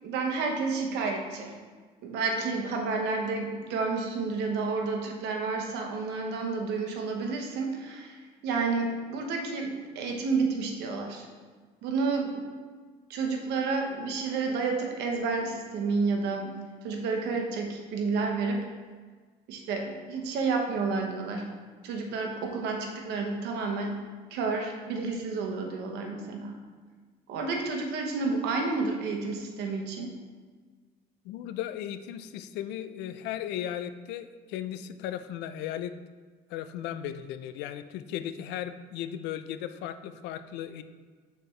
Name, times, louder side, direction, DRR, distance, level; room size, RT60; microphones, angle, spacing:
voice 1, 0.0-1.5 2.0-11.3 11.8-12.4 13.1-16.6 16.8-18.6 19.5-21.5 21.8-23.9 24.3-26.6 27.3-30.1, right 4 dB, 85° right, 2 dB, 1.0 m, -30 dB
voice 2, 31.2-35.9 36.5-40.8, left 11 dB, 90° left, 11 dB, 0.4 m, -36 dB
6.7 x 4.3 x 3.2 m, 1.5 s
cardioid pair, 110°, 17 cm